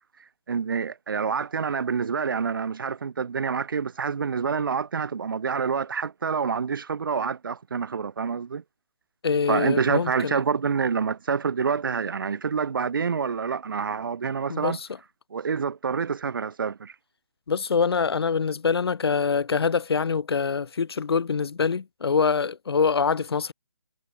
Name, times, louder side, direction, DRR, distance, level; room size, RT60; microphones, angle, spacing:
voice 1, 0.5-8.6 9.5-14.8 15.3-16.9, right 6 dB, 55° right, 0.9 m, -27 dB
voice 2, 9.2-10.4 14.5-14.9 17.5-23.5, left 5 dB, 75° left, 0.6 m, -24 dB
hypercardioid pair, 165°, 13 cm